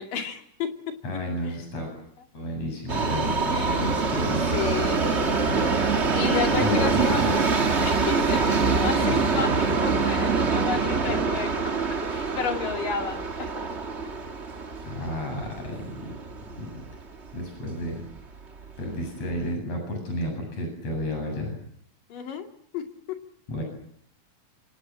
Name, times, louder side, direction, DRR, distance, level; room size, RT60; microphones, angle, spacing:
voice 1, 0.0-0.9 3.5-3.9 4.5-5.1 6.2-7.2 7.8-11.6 12.1-13.2 22.1-22.5 22.7-23.2, left 6 dB, 70° left, 5 dB, 4.2 m, -31 dB
voice 2, 1.0-1.9 2.3-4.8 6.6-7.3 14.9-15.9 16.5-16.8 17.3-18.0 18.8-21.6 23.5-23.6, left 1 dB, 45° left, 3 dB, 9.2 m, -31 dB
Subway metro underground, 2.9-17.0 17.3-17.4 18.2-18.3 18.6-18.7 19.4-19.5, right 4 dB, 35° right, 1.0 m, -25 dB
27.0 x 26.0 x 7.6 m, 0.66 s
omnidirectional pair, 4.0 m